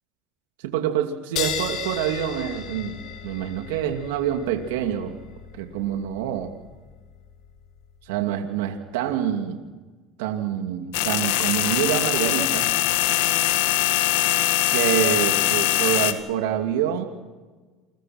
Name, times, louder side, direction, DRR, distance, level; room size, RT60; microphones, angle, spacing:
voice 1, 0.6-3.0 3.2-5.2 5.5-6.5 8.0-9.6 10.2-12.7 14.7-17.1, right 10 dB, 90° right, 4 dB, 2.5 m, -26 dB
sound 1, 1.4-8.3, left 8 dB, 60° left, 5.1 m, -36 dB
sound 2, 10.9-16.1, left 15 dB, 85° left, 2.1 m, -22 dB
29.0 x 23.0 x 6.1 m, 1.4 s
supercardioid pair, 110°, 0 cm